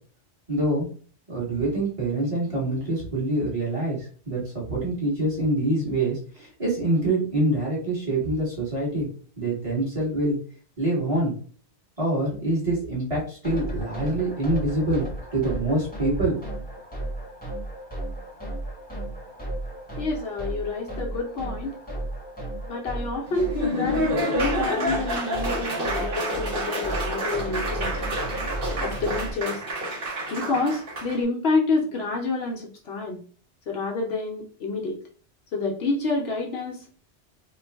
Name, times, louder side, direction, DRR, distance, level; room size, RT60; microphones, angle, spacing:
voice 1, 0.5-0.9 1.3-9.1 9.4-10.4 10.8-11.3 12.0-16.4, right 1 dB, 30° right, -6 dB, 1.6 m, -25 dB
sound 1, 13.4-29.3, right 1 dB, 10° left, 1.0 m, -34 dB
voice 2, 20.0-21.8 22.6-28.0 28.8-29.6 30.3-33.2 33.7-35.0 35.5-36.9, left 3 dB, 65° left, 0 dB, 0.9 m, -28 dB
Laughter / Applause, 23.3-31.2, equal, 50° right, 1.3 m, -28 dB
3.1 x 2.3 x 3.4 m, 0.43 s
omnidirectional pair, 1.2 m